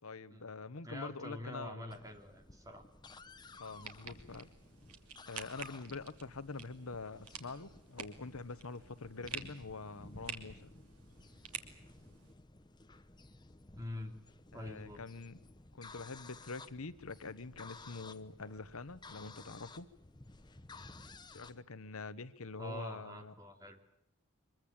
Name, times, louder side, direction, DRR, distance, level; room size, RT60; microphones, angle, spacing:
voice 1, 0.0-2.0 3.6-4.5 5.3-10.7 14.5-15.4 15.7-19.9 21.3-23.3, left 3 dB, 70° left, 14 dB, 1.1 m, -45 dB
voice 2, 0.8-2.8 13.7-14.2 14.5-15.0 22.6-23.8, left 1 dB, 15° right, 5 dB, 2.8 m, -46 dB
sound 1, 1.9-21.6, left 3 dB, 20° left, 0.9 m, -56 dB
sound 2, 3.6-12.3, right 7 dB, 90° right, 2.8 m, -50 dB
24.5 x 22.5 x 8.7 m, 0.78 s
head